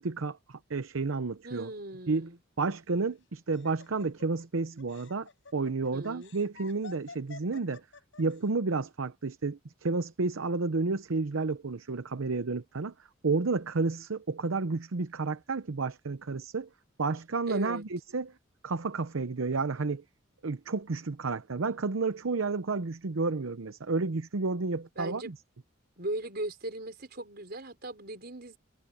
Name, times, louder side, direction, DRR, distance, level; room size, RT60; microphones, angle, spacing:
voice 1, 0.0-1.7 2.1-2.3 2.6-7.8 8.2-12.9 13.2-16.7 17.0-18.3 18.6-20.0 20.4-25.4, right 3 dB, 90° right, 0.8 m, -31 dB
voice 2, 1.4-2.4 5.9-6.3 17.5-17.8 25.0-25.3 26.0-28.6, right 1 dB, 50° right, 4.8 m, -38 dB
Laughter, 2.9-8.4, left 4 dB, 70° left, 5.9 m, -50 dB
head